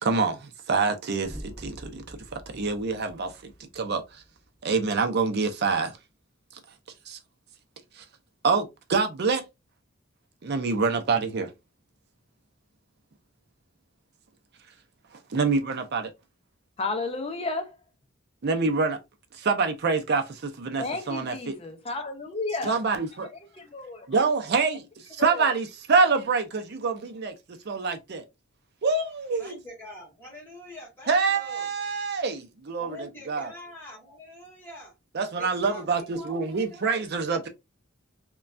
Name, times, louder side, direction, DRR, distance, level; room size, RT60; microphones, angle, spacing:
voice 1, 0.0-4.2 4.6-6.0 7.1-7.2 8.0-8.1 8.4-9.4 10.4-11.5 15.3-16.1 18.4-19.0 19.3-21.5 22.7-23.3 24.1-24.8 25.2-27.3 27.7-28.2 28.8-29.6 31.1-33.5 35.1-37.5, right 4 dB, 55° right, 0.5 m, -26 dB
sound 1, 1.2-5.2, equal, 5° right, 1.5 m, -45 dB
voice 2, 16.8-17.8 20.8-22.8 23.3-23.4 23.7-24.0 25.2-25.6, left 3 dB, 30° left, 0.5 m, -32 dB
voice 3, 29.4-31.7 32.8-34.9 35.3-37.5, equal, 10° left, 1.5 m, -45 dB
3.1 x 2.2 x 2.5 m
head